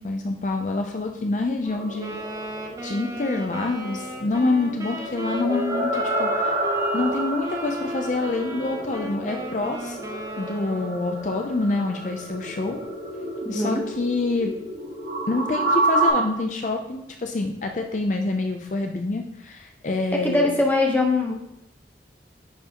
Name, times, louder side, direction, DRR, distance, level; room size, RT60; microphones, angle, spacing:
voice 1, 0.0-2.1 2.8-6.7 6.9-12.8 13.5-14.5 15.3-20.5, left 3 dB, 45° left, 3 dB, 0.5 m, -27 dB
sound 1, 1.7-16.1, right 2 dB, 80° right, 2.3 m, -29 dB
Wind instrument woodwind instrument, 2.0-11.0, right 2 dB, 20° right, 0.6 m, -35 dB
voice 2, 13.4-13.8 20.2-21.3, left 2 dB, 10° left, -1 dB, 0.9 m, -21 dB
10.0 x 4.7 x 2.9 m, 0.86 s
head